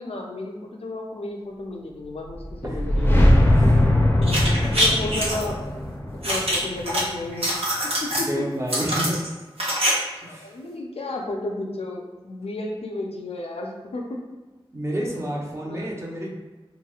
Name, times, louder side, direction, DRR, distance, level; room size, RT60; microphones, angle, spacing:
voice 1, 0.0-3.3 4.1-5.6 6.2-7.6 8.0-8.4 9.0-9.2 10.2-14.2 15.1-15.2 15.6-15.9, left 2 dB, 90° left, 0 dB, 0.4 m, -33 dB
sound 1, 2.3-7.5, left 1 dB, 20° left, 0.5 m, -20 dB
voice 2, 3.5-3.8 8.3-9.2 10.2-10.5 14.7-16.3, right 1 dB, 30° right, -2 dB, 0.6 m, -30 dB
Flashlight noises, 4.2-5.4 6.2-7.0 7.3-8.3 8.7-9.9 10.2-10.3, equal, 85° right, 0.7 m, -24 dB
3.0 x 2.6 x 2.3 m, 1.2 s
wide cardioid pair, 60°, 10 cm